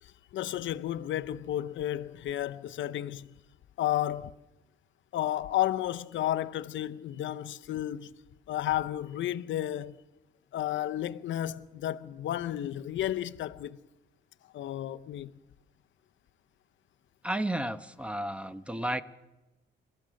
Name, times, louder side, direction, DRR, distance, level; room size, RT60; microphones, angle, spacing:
voice 1, 0.0-3.3 3.8-4.4 5.1-8.1 8.5-10.0 10.5-13.8 14.5-15.3, left 12 dB, 70° left, 0.7 m, -32 dB
voice 2, 17.2-19.0, right 1 dB, 5° right, 0.9 m, -32 dB
29.5 x 14.5 x 6.4 m
cardioid pair, 90°, 20 cm